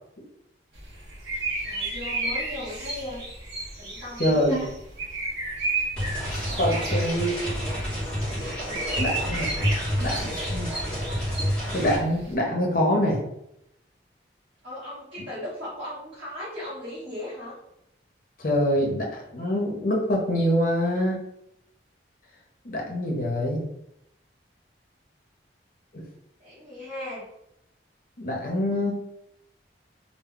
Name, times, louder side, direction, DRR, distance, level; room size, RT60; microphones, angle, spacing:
sound 1, 0.7-12.3, right 2 dB, 80° right, 0.8 m, -33 dB
voice 1, 1.6-3.2 3.8-4.7 6.5-7.1 14.6-17.6 26.4-27.3, left 1 dB, 30° right, -11 dB, 0.9 m, -37 dB
voice 2, 4.2-4.7 6.6-7.6 9.0-9.5 10.0-10.7 11.7-13.2 18.4-19.1 19.3-21.2 22.6-23.7 25.9-26.1 28.2-29.0, equal, 50° left, -1 dB, 0.7 m, -25 dB
sound 2, 6.0-12.0, equal, 5° left, 0.8 m, -29 dB
2.2 x 2.0 x 3.6 m, 0.80 s
head